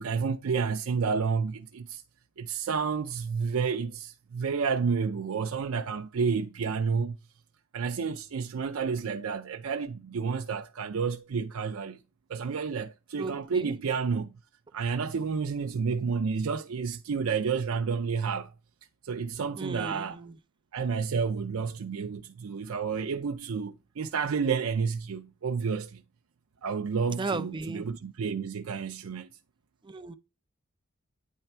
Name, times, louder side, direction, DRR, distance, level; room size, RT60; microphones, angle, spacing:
voice 1, 0.0-2.0 2.4-7.2 7.7-12.0 12.3-14.3 14.7-18.5 19.0-20.2 20.7-26.0 26.6-29.3, right 5 dB, 75° right, 0.5 m, -30 dB
voice 2, 13.2-13.8 19.6-20.3 27.1-27.9 29.8-30.1, right 3 dB, 20° right, 0.5 m, -35 dB
9.1 x 3.3 x 4.3 m
head